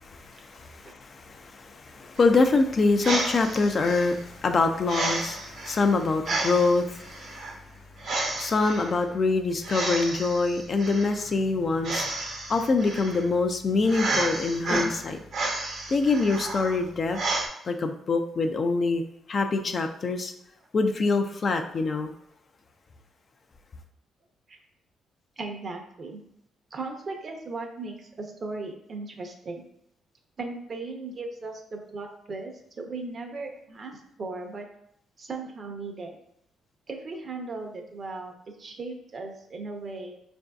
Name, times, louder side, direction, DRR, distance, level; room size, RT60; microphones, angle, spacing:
voice 1, 0.0-7.6 8.4-12.1 12.5-15.2 15.9-17.2 17.6-19.0 19.3-20.3 20.7-22.1, left 3 dB, 40° left, 6 dB, 0.4 m, -25 dB
sound 1, 2.2-17.5, right 2 dB, 65° right, 1.0 m, -32 dB
voice 2, 25.4-26.2 26.7-29.6 30.4-34.7 35.2-36.2 36.9-40.1, right 3 dB, 45° right, 3 dB, 0.7 m, -37 dB
4.8 x 2.6 x 2.3 m, 0.73 s
cardioid pair, 90°, 0 cm